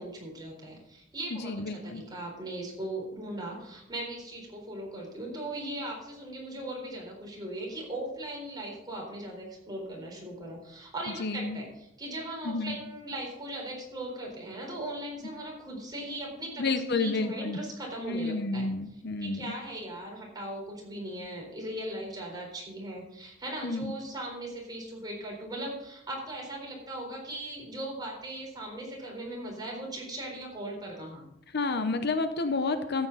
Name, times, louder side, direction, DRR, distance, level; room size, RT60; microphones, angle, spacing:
voice 1, 0.0-18.7 19.2-31.3, right 1 dB, 20° right, -1 dB, 4.0 m, -39 dB
voice 2, 1.3-2.0 11.2-11.6 12.4-12.8 16.6-17.6 18.1-19.5 23.6-23.9 31.5-33.1, left 3 dB, 55° left, 9 dB, 0.8 m, -30 dB
13.5 x 8.7 x 4.0 m, 0.80 s
head